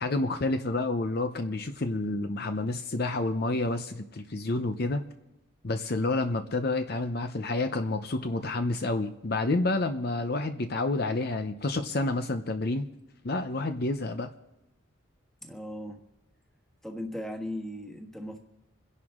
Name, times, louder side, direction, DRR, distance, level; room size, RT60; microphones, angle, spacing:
voice 1, 0.0-5.0 5.6-12.9 13.2-14.3, left 2 dB, 50° left, 8 dB, 0.7 m, -29 dB
voice 2, 15.4-16.0 16.8-18.4, left 1 dB, ahead, 2 dB, 1.5 m, -37 dB
26.5 x 11.0 x 3.7 m, 0.93 s
head